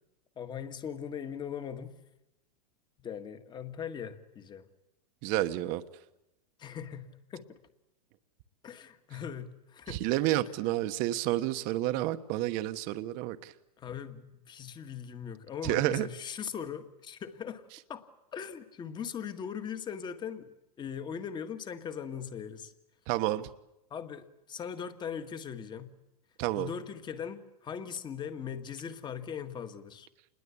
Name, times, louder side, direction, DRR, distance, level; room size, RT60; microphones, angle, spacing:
voice 1, 0.3-2.0 3.0-4.7 6.6-7.6 8.6-10.0 13.8-17.6 17.9-18.0 18.3-20.5 20.8-22.7 23.9-25.9 26.6-30.1, left 7 dB, 20° left, 9 dB, 1.8 m, -40 dB
voice 2, 5.2-5.8 9.9-13.5 15.6-16.1 23.1-23.5 26.4-26.7, right 15 dB, 45° right, 11 dB, 1.2 m, -30 dB
28.0 x 21.0 x 8.5 m, 0.89 s
supercardioid pair, 135°, 20 cm